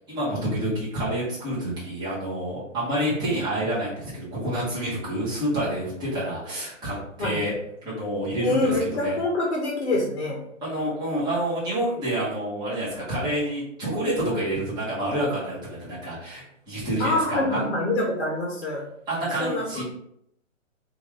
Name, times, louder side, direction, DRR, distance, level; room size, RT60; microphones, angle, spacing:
voice 1, 0.1-7.5 7.8-9.2 10.6-17.7 19.1-19.8, right 1 dB, 10° right, -9 dB, 1.2 m, -28 dB
voice 2, 8.4-10.4 17.0-18.9 19.4-19.8, left 2 dB, 55° left, -1 dB, 0.8 m, -25 dB
3.0 x 2.6 x 3.0 m, 0.74 s
figure-of-eight pair, 130°, 39 cm